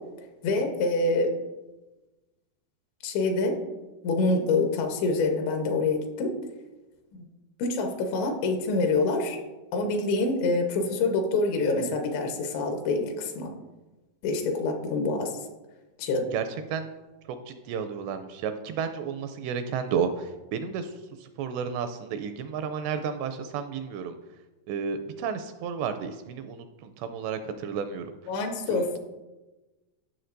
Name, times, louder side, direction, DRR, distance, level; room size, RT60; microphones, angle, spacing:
voice 1, 0.4-1.3 3.0-3.6 4.0-6.3 7.1-7.2 7.6-9.4 9.7-13.5 14.2-15.3 16.0-16.3 28.3-29.0, left 3 dB, 80° left, 4 dB, 3.3 m, -26 dB
voice 2, 16.3-16.9 17.3-24.2 24.7-28.3 28.7-29.0, right 6 dB, 85° right, 9 dB, 2.5 m, -32 dB
15.5 x 6.5 x 2.6 m, 1.1 s
omnidirectional pair, 5.2 m